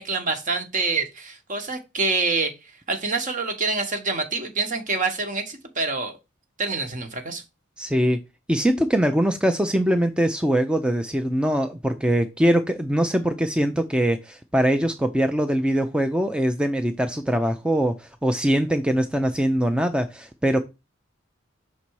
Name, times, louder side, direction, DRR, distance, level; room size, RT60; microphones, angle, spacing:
voice 1, 0.0-2.5 2.9-6.1 6.6-7.4, right 3 dB, 40° right, 1.2 m, -26 dB
voice 2, 7.8-8.2 8.5-20.6, equal, 5° right, 0.4 m, -22 dB
6.0 x 4.1 x 4.6 m
head